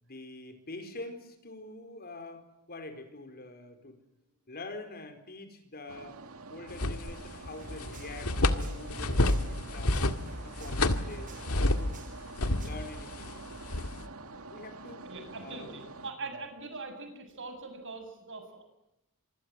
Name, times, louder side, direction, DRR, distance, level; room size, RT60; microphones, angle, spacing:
voice 1, 0.0-4.0 4.5-6.2 6.5-11.3 11.7-12.0 12.6-13.6 14.5-15.0 15.4-15.7 16.2-16.3, left 2 dB, 45° left, 8 dB, 4.3 m, -45 dB
sound 1, 5.9-16.1, right 3 dB, 75° right, 2.2 m, -47 dB
sound 2, 6.7-7.5 7.8-12.0 12.4-14.0, left 2 dB, 85° left, 1.9 m, -29 dB
sound 3, 7.6-12.9, right 1 dB, 35° right, 4.4 m, -46 dB
voice 2, 15.0-18.6, right 3 dB, 60° right, 7 dB, 7.4 m, -42 dB
26.0 x 24.5 x 7.7 m, 0.87 s
head